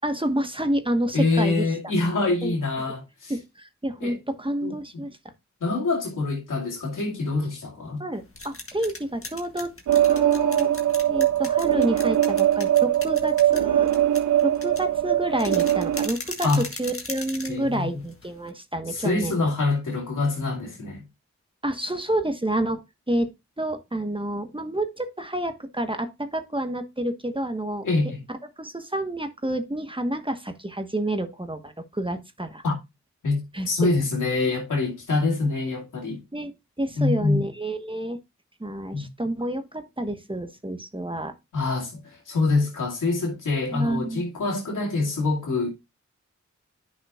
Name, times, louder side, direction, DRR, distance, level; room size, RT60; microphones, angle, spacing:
voice 1, 0.0-1.7 2.4-2.5 3.3-5.1 8.0-10.7 11.1-13.9 14.4-16.5 16.8-19.4 21.6-22.8 23.1-23.3 23.6-27.9 28.6-32.6 33.5-33.7 36.3-36.5 36.8-38.2 38.6-41.3 43.7-44.2, right 1 dB, 15° right, 1.2 m, -29 dB
voice 2, 1.1-3.3 4.0-4.2 4.6-5.1 5.6-8.0 16.4-16.6 17.5-18.0 18.9-21.1 27.8-28.2 32.6-32.7 33.2-33.4 33.7-36.2 37.0-37.4 38.9-39.1 41.5-45.7, left 3 dB, 90° left, 2.3 m, -25 dB
sound 1, 8.1-18.5, left 3 dB, 45° left, 1.7 m, -39 dB
sound 2, 9.9-16.1, right 12 dB, 75° right, 0.4 m, -21 dB
9.9 x 5.7 x 2.4 m
cardioid pair, 40°, 30 cm